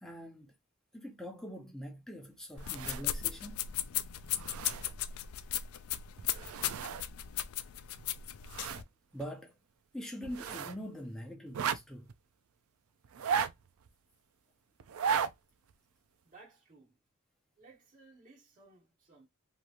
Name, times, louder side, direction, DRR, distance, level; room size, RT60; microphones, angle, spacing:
voice 1, 0.0-0.5 0.9-3.7 9.1-9.5 9.9-12.1, equal, ahead, 0.7 m, -43 dB
sound 1, 2.6-8.8, left 11 dB, 75° left, 0.3 m, -37 dB
sound 2, 2.6-3.3 3.7-3.8 4.2-5.2 6.2-7.1 7.4-7.5 8.0-8.9 9.2-9.3 10.2-10.8 11.5-12.1 13.0-13.9 14.8-15.3 15.7-15.8, right 7 dB, 70° right, 0.4 m, -35 dB
voice 2, 16.2-17.0 17.6-19.3, right 3 dB, 40° right, 1.2 m, -59 dB
3.1 x 2.8 x 2.4 m
head